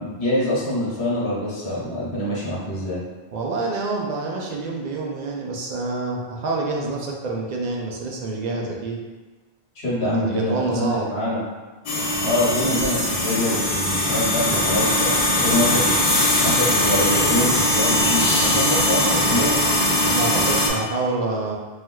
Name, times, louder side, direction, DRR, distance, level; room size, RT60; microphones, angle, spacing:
voice 1, 0.0-3.0 9.7-11.4 12.2-15.9 16.4-19.6, left 1 dB, 80° left, -6 dB, 1.1 m, -25 dB
voice 2, 3.3-9.0 10.0-11.1 20.1-21.6, right 3 dB, 55° right, -1 dB, 0.5 m, -27 dB
sound 1, 11.9-20.7, left 1 dB, 60° left, 0.8 m, -20 dB
3.3 x 2.8 x 2.3 m, 1.2 s
omnidirectional pair, 1.1 m